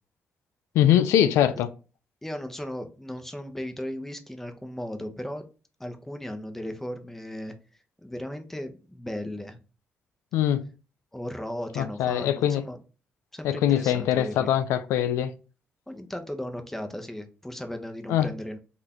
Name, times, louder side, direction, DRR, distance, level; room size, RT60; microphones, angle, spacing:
voice 1, 0.7-1.7 10.3-10.7 11.8-12.6 13.4-15.3 18.1-18.3, left 11 dB, 85° left, 0.3 m, -22 dB
voice 2, 2.2-5.5 5.8-7.5 8.0-9.6 11.1-12.8 13.3-14.5 15.9-18.6, left 1 dB, 5° left, 0.9 m, -36 dB
4.2 x 2.6 x 4.3 m
supercardioid pair, 60°, 5 cm